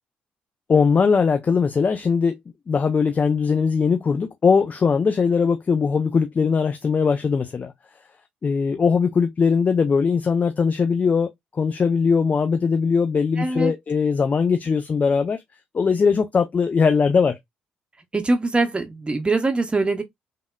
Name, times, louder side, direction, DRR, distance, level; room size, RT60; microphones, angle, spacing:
voice 1, 0.7-2.4 2.7-7.7 8.4-15.4 15.7-17.4, left 5 dB, 35° left, 0.4 m, -20 dB
voice 2, 13.4-13.7 18.1-20.0, right 3 dB, 20° right, 0.7 m, -22 dB
3.4 x 2.2 x 2.2 m
figure-of-eight pair, 45°, 5 cm